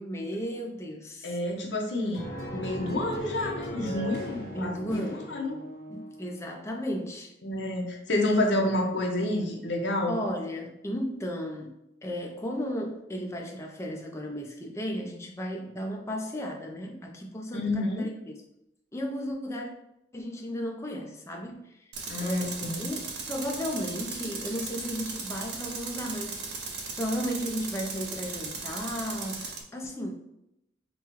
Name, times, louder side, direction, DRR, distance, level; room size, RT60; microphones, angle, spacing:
voice 1, 0.0-1.4 4.5-5.2 5.9-7.3 10.1-18.3 18.9-19.7 20.1-21.9 22.2-26.4 27.0-30.1, equal, 15° left, 1 dB, 0.5 m, -34 dB
voice 2, 1.2-2.3 2.5-5.6 7.4-10.1 17.5-18.1 22.1-22.9, left 1 dB, 60° left, 0 dB, 0.8 m, -29 dB
sound 1, 2.1-6.3, equal, 45° left, 1.2 m, -38 dB
Tools, 21.9-29.6, right 4 dB, 55° right, 0.7 m, -37 dB
5.3 x 2.2 x 3.0 m, 0.84 s
head